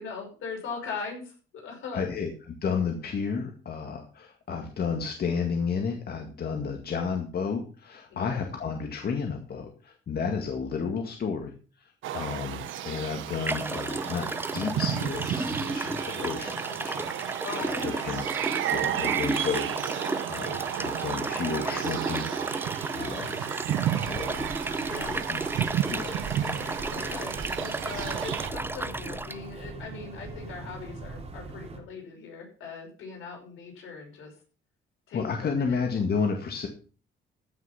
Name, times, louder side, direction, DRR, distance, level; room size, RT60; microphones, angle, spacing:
voice 1, 0.0-2.0 8.1-8.3 17.4-18.1 24.8-25.1 27.0-34.3 35.1-35.8, left 5 dB, 80° left, 1 dB, 5.7 m, -40 dB
voice 2, 1.9-11.5 11.8-18.2 18.7-22.3 22.6-22.7 22.9-23.4 24.1-25.4 25.9-27.2 35.1-36.7, left 5 dB, 50° left, 3 dB, 2.1 m, -32 dB
sound 1, 12.0-28.5, right 12 dB, 85° right, 0.9 m, -33 dB
sound 2, 12.7-12.8 13.4-29.4, right 2 dB, 10° right, 0.6 m, -33 dB
sound 3, 24.0-31.8, right 3 dB, 35° right, 3.0 m, -42 dB
15.0 x 6.3 x 5.8 m, 0.37 s
cardioid pair, 90°, 20 cm